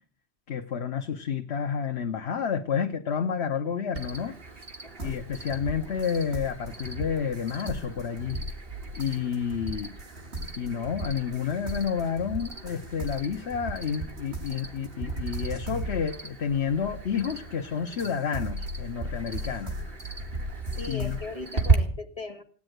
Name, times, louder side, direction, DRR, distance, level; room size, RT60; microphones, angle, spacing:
voice 1, 0.5-4.3 5.0-8.4 9.0-9.9 10.6-19.8 20.9-21.2, left 7 dB, 80° left, 5 dB, 1.3 m, -30 dB
Cricket, 3.9-21.7, right 4 dB, 60° right, 2.4 m, -36 dB
voice 2, 4.8-5.2 20.8-22.4, left 3 dB, 35° left, 5 dB, 2.1 m, -38 dB
sound 1, 5.0-17.6 18.0-21.3, right 1 dB, 75° right, 3.6 m, -37 dB
17.5 x 10.0 x 7.9 m, 0.44 s
omnidirectional pair, 1.1 m